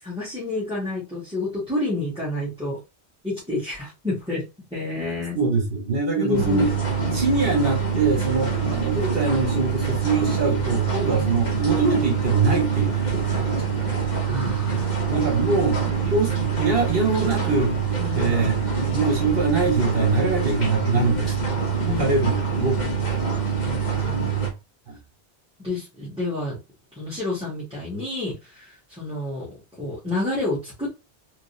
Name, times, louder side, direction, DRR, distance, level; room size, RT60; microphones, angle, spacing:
voice 1, 0.0-2.8 3.2-4.4 4.7-5.4 6.2-6.7 7.0-7.2 11.1-11.2 14.3-15.1 18.0-18.3 21.8-22.0 23.6-24.3 25.6-26.6 26.9-31.1, left 2 dB, 5° right, 1.6 m, -29 dB
voice 2, 5.3-6.7 7.1-14.1 15.1-17.7 18.1-21.5 21.9-23.3 24.9-25.0, right 3 dB, 60° right, 1.2 m, -24 dB
sound 1, 6.3-24.5, right 6 dB, 45° left, 1.2 m, -25 dB
3.8 x 3.1 x 2.6 m
omnidirectional pair, 1.1 m